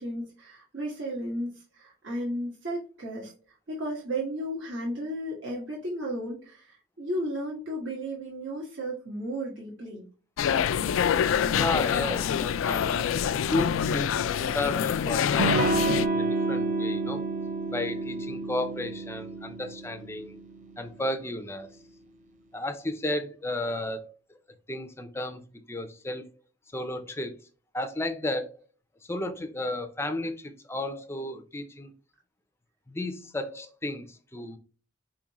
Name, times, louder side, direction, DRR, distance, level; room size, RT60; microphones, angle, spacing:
voice 1, 0.0-3.3 3.7-10.0, right 1 dB, 65° right, -4 dB, 1.4 m, -34 dB
sound 1, 10.4-16.1, left 8 dB, 75° left, 0.3 m, -26 dB
voice 2, 11.5-13.1 13.5-14.1 14.5-15.6 16.1-17.2 17.7-20.4 20.8-21.7 22.5-24.1 24.7-26.3 26.7-27.3 27.7-28.6 29.0-31.9 32.9-34.6, left 1 dB, 10° left, 8 dB, 0.5 m, -33 dB
Electric guitar / Strum, 15.4-20.8, right 3 dB, 35° right, 0.5 m, -29 dB
4.6 x 3.7 x 2.9 m, 0.39 s
head